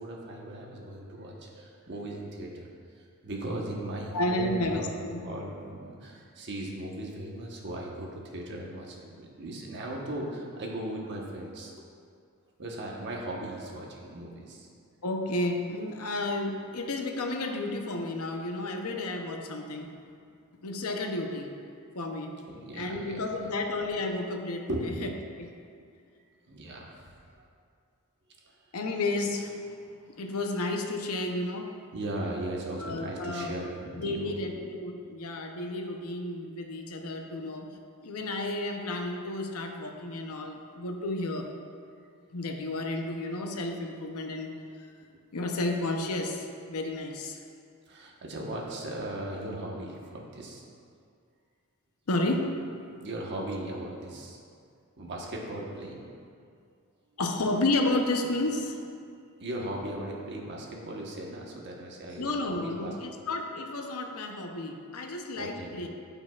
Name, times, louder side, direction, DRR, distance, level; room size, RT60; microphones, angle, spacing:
voice 1, 0.0-2.7 3.2-5.0 5.2-11.7 12.6-14.7 22.5-23.2 24.7-24.9 26.5-26.9 31.9-34.4 47.9-50.6 53.0-54.4 55.0-56.0 59.4-62.9 65.4-65.7, right 1 dB, 50° right, -2 dB, 1.2 m, -37 dB
voice 2, 4.1-5.2 15.0-20.0 20.6-21.5 21.9-22.4 22.7-25.1 25.4-25.5 28.7-29.6 30.2-31.7 32.8-33.5 33.9-37.7 38.0-41.5 42.3-44.5 45.3-47.4 52.1-52.7 57.2-58.9 62.2-65.9, left 2 dB, 70° left, 3 dB, 0.7 m, -32 dB
13.5 x 5.4 x 2.4 m, 2.3 s
head